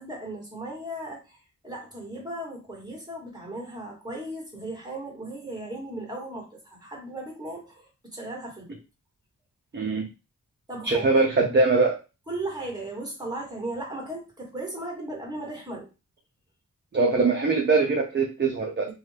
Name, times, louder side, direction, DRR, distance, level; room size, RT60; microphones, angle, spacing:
voice 1, 0.0-1.4 1.6-8.8 10.7-11.1 12.3-15.9 18.8-18.9, right 1 dB, 10° right, -1 dB, 1.4 m, -36 dB
voice 2, 9.7-10.1 10.8-12.0 16.9-18.9, right 3 dB, 35° right, 0 dB, 0.5 m, -22 dB
2.6 x 2.3 x 3.2 m, 0.29 s
wide cardioid pair, 95°, 33 cm